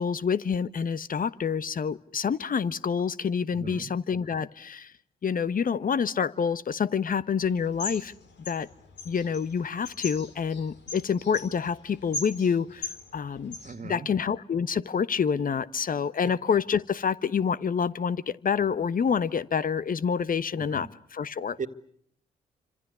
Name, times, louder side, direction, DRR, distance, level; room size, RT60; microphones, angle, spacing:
voice 1, 0.0-4.9 5.2-8.1 8.5-8.7 9.0-13.5 13.8-21.6, left 6 dB, 45° left, 16 dB, 1.2 m, -27 dB
voice 2, 3.5-3.9 13.6-14.1 20.6-20.9 21.6-21.7, right 5 dB, 45° right, 11 dB, 2.1 m, -37 dB
sound 1, 7.4-13.7, left 3 dB, 65° left, 3.9 m, -40 dB
29.5 x 26.5 x 6.9 m, 0.66 s
hypercardioid pair, 40°, 19 cm